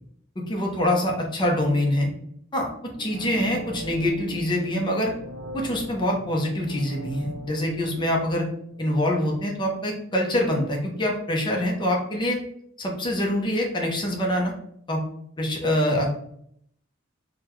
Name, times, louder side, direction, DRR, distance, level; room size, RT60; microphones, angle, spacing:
voice 1, 0.4-2.1 2.5-5.1 5.5-8.4 8.8-12.4 12.8-14.5 14.9-15.0 15.4-16.1, left 1 dB, 20° left, 0 dB, 0.6 m, -25 dB
sound 1, 2.8-9.7 10.0-10.1, right 1 dB, 65° right, 0.5 m, -41 dB
3.8 x 2.2 x 3.0 m, 0.69 s
head